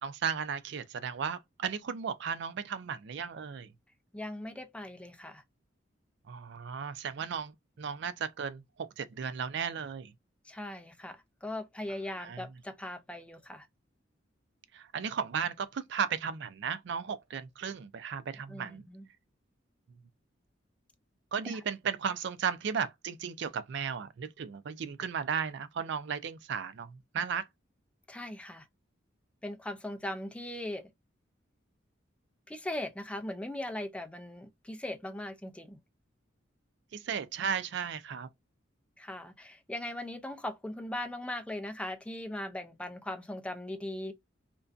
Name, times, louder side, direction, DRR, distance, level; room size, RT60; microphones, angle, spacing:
voice 1, 0.0-3.7 6.3-10.1 12.2-12.4 14.7-18.9 21.3-27.5 36.9-38.3, right 6 dB, 65° right, 0.4 m, -35 dB
voice 2, 4.1-5.4 10.4-13.7 18.5-19.1 21.5-21.6 28.1-28.7 29.4-30.9 32.5-35.8 39.0-44.1, left 1 dB, 5° left, 0.4 m, -39 dB
2.5 x 2.2 x 2.3 m
head